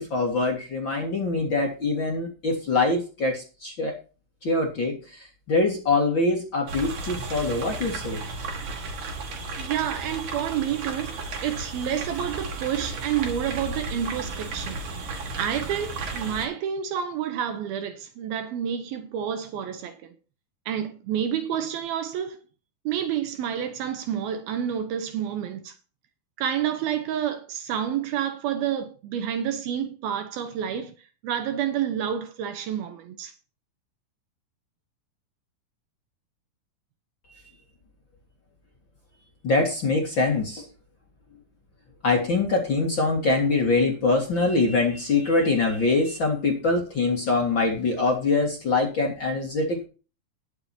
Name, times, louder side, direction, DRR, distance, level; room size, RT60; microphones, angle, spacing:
voice 1, 0.0-4.0 4.4-8.2 39.4-40.7 42.0-49.9, left 3 dB, 40° left, 2.0 m, -24 dB
sound 1, 6.7-16.5, right 3 dB, 55° right, 3.3 m, -34 dB
voice 2, 9.6-11.1 11.4-20.1 20.7-22.4 22.9-25.7 26.4-30.9 31.2-33.3, right 9 dB, 75° right, 2.9 m, -29 dB
20.0 x 7.0 x 2.8 m
omnidirectional pair, 4.5 m